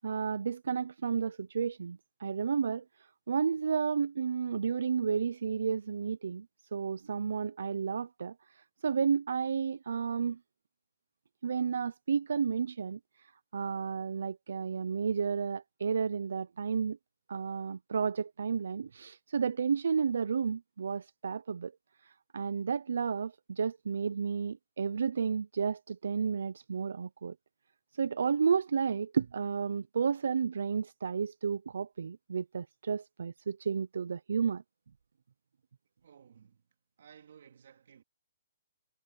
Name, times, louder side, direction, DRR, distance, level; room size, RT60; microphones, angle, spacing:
voice 1, 0.0-2.8 3.3-6.5 6.7-10.4 11.4-17.0 17.3-21.7 22.0-27.3 27.9-34.6, right 6 dB, 80° right, 0.5 m, -32 dB
voice 2, 36.0-36.6 37.0-38.0, right 8 dB, 60° right, 2.3 m, -57 dB
hypercardioid pair, 170°, 0 cm